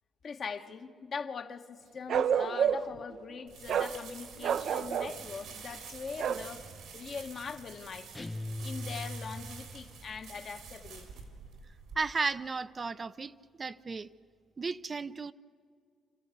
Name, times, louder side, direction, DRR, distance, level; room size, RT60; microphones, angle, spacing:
voice 1, 0.2-6.7 6.9-8.3 8.6-11.1, left 5 dB, 50° left, 1.3 m, -42 dB
Bark, 2.1-3.0 3.7-3.9 4.4-5.2 6.2-6.5, right 8 dB, 70° right, 0.7 m, -29 dB
sound 1, 3.5-11.9, right 5 dB, 85° right, 3.3 m, -48 dB
sound 2, 8.1-9.9, left 1 dB, 15° left, 0.5 m, -39 dB
voice 2, 12.0-13.3 13.6-14.1 14.6-15.3, right 4 dB, 35° right, 0.5 m, -34 dB
27.0 x 14.0 x 8.4 m
cardioid pair, 90°, 0 cm